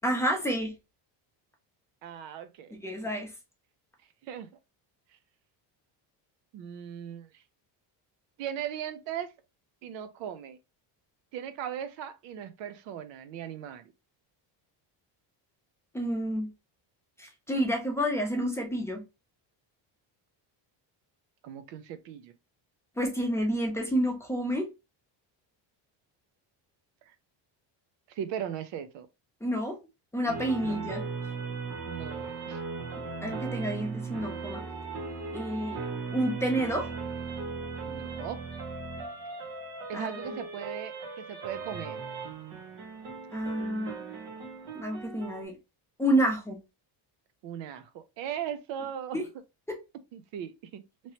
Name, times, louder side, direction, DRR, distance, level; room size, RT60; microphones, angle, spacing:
voice 1, 0.0-0.7 2.8-3.3 15.9-16.5 17.2-19.0 23.0-24.7 29.4-29.8 30.1-31.0 33.2-34.6 35.3-35.8 36.1-36.9 39.9-40.3 43.3-44.0 44.7-45.5 46.0-46.6 49.1-49.3, equal, 5° left, 0.7 m, -29 dB
voice 2, 2.0-2.8 4.2-4.5 6.5-7.3 8.4-9.3 9.8-10.6 11.3-13.9 21.4-22.3 28.2-29.1 30.6-30.8 31.8-32.6 37.8-38.4 39.9-42.0 47.4-49.2 50.1-50.8, right 9 dB, 75° right, 0.6 m, -38 dB
sound 1, 30.3-45.4, right 4 dB, 55° right, 1.1 m, -38 dB
3.0 x 2.9 x 2.8 m
cardioid pair, 150°, 45 cm